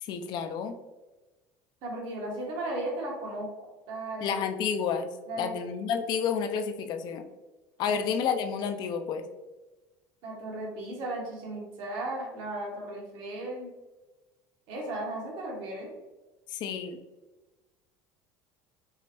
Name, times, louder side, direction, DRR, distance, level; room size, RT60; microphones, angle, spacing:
voice 1, 0.0-0.8 4.2-5.1 5.4-7.2 7.8-9.2 16.5-17.0, left 7 dB, 55° left, 8 dB, 0.4 m, -30 dB
voice 2, 1.8-3.5 3.9-4.4 5.3-5.6 7.9-8.0 10.2-13.7 14.7-15.9, right 1 dB, 65° right, -1 dB, 1.2 m, -35 dB
4.7 x 2.1 x 2.9 m, 1.1 s
supercardioid pair, 105°, 9 cm